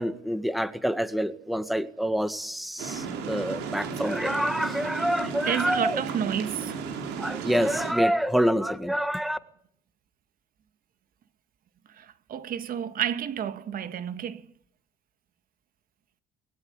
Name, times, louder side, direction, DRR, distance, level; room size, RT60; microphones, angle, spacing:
voice 1, 0.0-6.0 7.2-9.4, equal, ahead, 1.8 m, -27 dB
sound 1, 2.8-7.9, right 6 dB, 90° right, 6.4 m, -34 dB
voice 2, 5.5-6.8 11.9-14.4, right 9 dB, 60° right, 1.9 m, -31 dB
26.0 x 21.0 x 9.8 m
cardioid pair, 110°, 17 cm